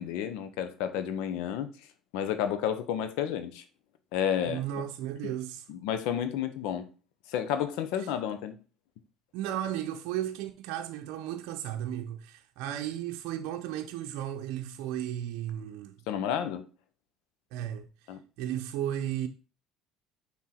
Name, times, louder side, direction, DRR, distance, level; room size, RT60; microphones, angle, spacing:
voice 1, 0.0-1.7 2.1-3.6 4.1-4.6 5.7-6.9 7.3-8.5 16.1-16.6 18.1-18.2, left 9 dB, 80° left, 0.8 m, -31 dB
voice 2, 4.5-5.7 8.0-8.1 9.3-16.0 17.5-17.9 18.4-19.3, right 11 dB, 80° right, 0.6 m, -34 dB
6.2 x 3.6 x 4.4 m
supercardioid pair, 95°, 0 cm